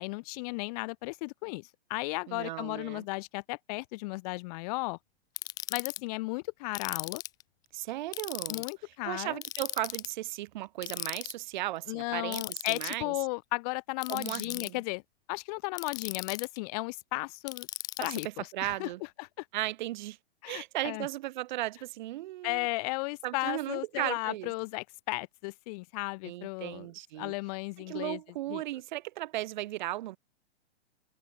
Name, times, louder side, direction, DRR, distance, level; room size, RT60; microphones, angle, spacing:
voice 1, 0.0-5.0 5.7-7.2 8.5-9.4 11.9-15.0 15.3-17.7 18.0-18.9 19.2-19.5 20.4-21.1 22.4-26.9 27.2-28.2 28.5-28.6, left 26 dB, 35° left, 2.2 m, -35 dB
voice 2, 2.3-3.0 7.7-8.6 9.0-13.1 14.1-14.8 18.0-19.0 19.5-20.2 20.5-22.7 23.2-24.5 26.2-27.3 27.8-30.2, right 16 dB, 45° right, 3.4 m, -36 dB
Ratchet pawl, 5.4-6.0 6.7-7.4 8.1-8.7 9.4-10.1 10.8-11.3 12.3-13.0 14.0-14.7 15.8-16.6 17.5-18.3, left 15 dB, 10° left, 0.4 m, -37 dB
figure-of-eight pair, 115°, 33 cm